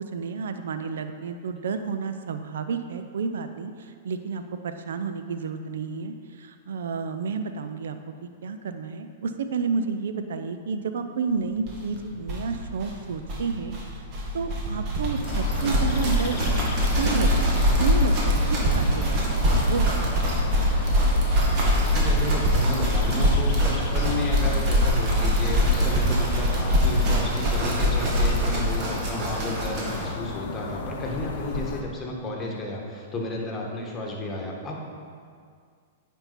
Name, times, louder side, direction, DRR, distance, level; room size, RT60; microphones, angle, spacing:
voice 1, 0.0-8.0 8.4-13.9 14.3-16.4 17.0-20.1, right 5 dB, 70° right, 8 dB, 0.5 m, -31 dB
sound 1, 11.7-11.8 12.0-12.1 12.2-30.1, equal, 40° right, 1.8 m, -23 dB
sound 2, 15.2-31.8, left 5 dB, 55° left, 0.8 m, -32 dB
voice 2, 21.9-34.8, left 1 dB, 20° left, -2 dB, 1.7 m, -32 dB
8.8 x 5.4 x 4.2 m, 2.1 s
hypercardioid pair, 110°, 0 cm